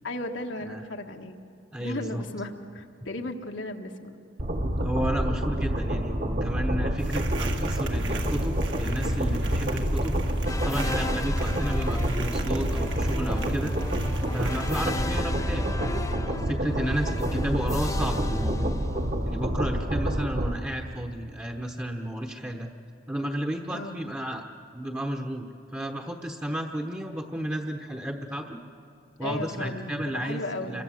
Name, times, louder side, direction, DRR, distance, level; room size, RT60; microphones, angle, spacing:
voice 1, 0.0-1.4 1.8-4.2 23.7-24.0 29.2-30.8, left 1 dB, 80° left, 3 dB, 1.8 m, -35 dB
voice 2, 1.7-2.2 4.8-10.2 10.6-13.7 14.3-18.8 19.2-22.7 23.1-24.4 24.7-28.6 29.2-30.8, right 1 dB, 15° right, 1 dB, 1.1 m, -32 dB
sound 1, 4.4-20.5, equal, 50° right, 1.6 m, -27 dB
sound 2, 7.0-15.1, right 5 dB, 65° right, 1.9 m, -41 dB
sound 3, 10.4-19.3, left 2 dB, 20° left, 0.7 m, -37 dB
27.0 x 23.0 x 7.7 m, 2.5 s
head